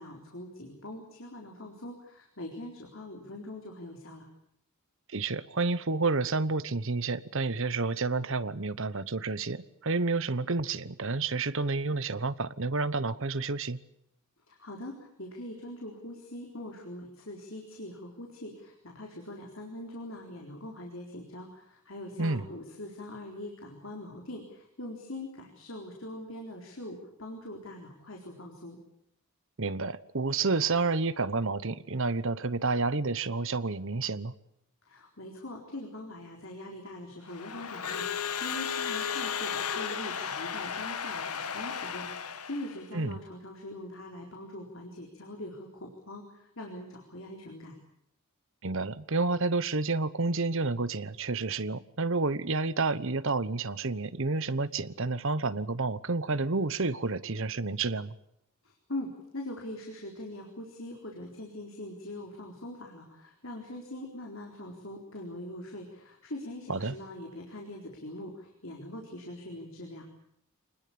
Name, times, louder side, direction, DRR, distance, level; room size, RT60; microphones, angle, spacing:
voice 1, 0.0-4.3 14.5-28.8 34.9-47.7 58.6-70.0, left 1 dB, 60° left, 4.2 m, -42 dB
voice 2, 5.1-13.8 22.2-22.4 29.6-34.3 42.9-43.2 48.6-58.1 66.7-67.0, right 3 dB, 60° right, 1.0 m, -30 dB
Crowd / Alarm, 37.3-42.8, left 7 dB, 90° left, 1.6 m, -34 dB
26.0 x 20.5 x 8.7 m
head